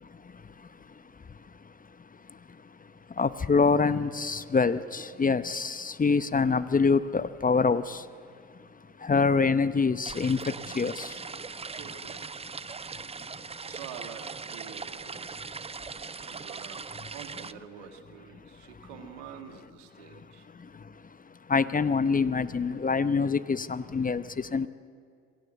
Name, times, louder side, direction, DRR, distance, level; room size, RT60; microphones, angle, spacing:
voice 1, 0.0-8.1 8.5-11.7 13.1-13.4 16.0-16.3 20.5-24.7, left 4 dB, 25° left, 0.8 m, -27 dB
sound 1, 10.0-17.5, right 5 dB, 15° right, 0.6 m, -40 dB
voice 2, 11.7-12.3 13.6-15.3 16.2-20.5, right 8 dB, 80° right, 2.0 m, -47 dB
26.0 x 17.0 x 7.9 m
hypercardioid pair, 60°, 36 cm